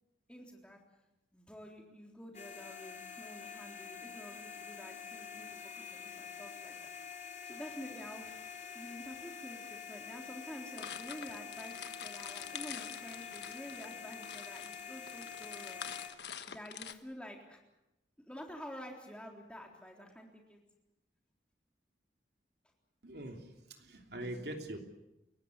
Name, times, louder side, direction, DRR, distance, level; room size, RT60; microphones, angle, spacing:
voice 1, 0.3-0.8 1.3-6.9 7.5-17.6 18.2-20.6, equal, 5° left, 1 dB, 3.7 m, -49 dB
sound 1, 2.3-16.1, left 7 dB, 40° left, 3.8 m, -47 dB
sound 2, 10.8-16.9, left 8 dB, 75° left, 1.2 m, -46 dB
voice 2, 23.0-24.8, right 1 dB, 65° right, 4 dB, 3.1 m, -43 dB
29.5 x 16.0 x 8.3 m, 0.94 s
head